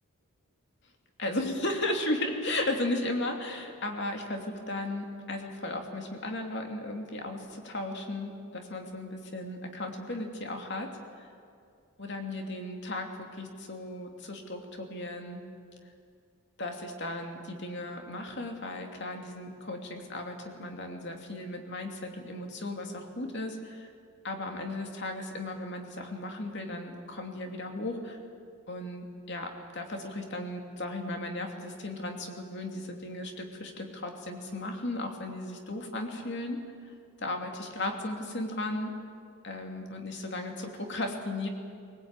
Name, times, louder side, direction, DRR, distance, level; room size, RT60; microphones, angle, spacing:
voice 1, 1.2-11.3 12.0-15.4 16.6-23.9 24.2-28.2 28.7-36.6 37.2-38.9 39.4-41.5, left 1 dB, 50° left, 3 dB, 2.7 m, -35 dB
21.0 x 19.0 x 9.0 m, 2.3 s
head